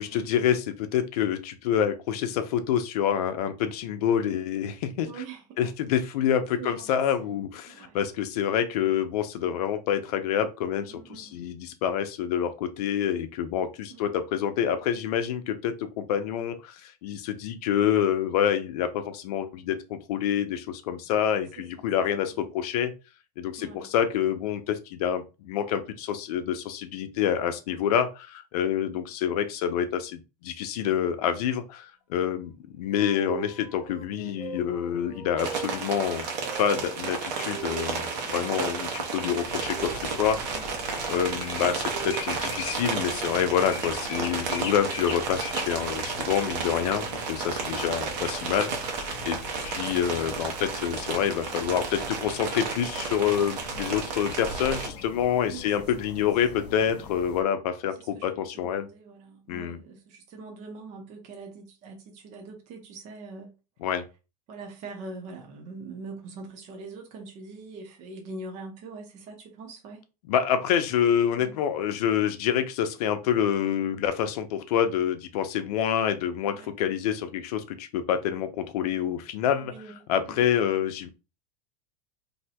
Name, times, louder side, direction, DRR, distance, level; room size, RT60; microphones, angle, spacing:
voice 1, 0.0-5.2 5.6-22.9 23.4-36.3 36.6-40.6 41.1-49.4 49.6-58.9 59.5-59.8 63.8-64.0 70.3-79.7 80.1-81.1, left 9 dB, 70° left, 0.6 m, -27 dB
voice 2, 5.1-5.6 6.6-6.9 7.2-8.0 10.9-11.5 13.9-14.1 21.6-21.9 23.6-23.9 27.7-27.9 40.4-40.7 47.0-47.5 55.5-55.7 56.0-56.1 58.0-63.5 64.5-70.0 71.3-71.6 76.5-76.7 79.6-80.0 80.3-80.4, right 3 dB, 35° right, 0.8 m, -43 dB
sound 1, 32.9-44.8 46.0-48.2, right 6 dB, 5° right, 0.9 m, -43 dB
sound 2, 35.4-54.9, right 5 dB, 80° right, 0.9 m, -32 dB
sound 3, 39.4-57.4, left 5 dB, 25° left, 0.6 m, -42 dB
2.7 x 2.2 x 4.1 m
supercardioid pair, 155°, 21 cm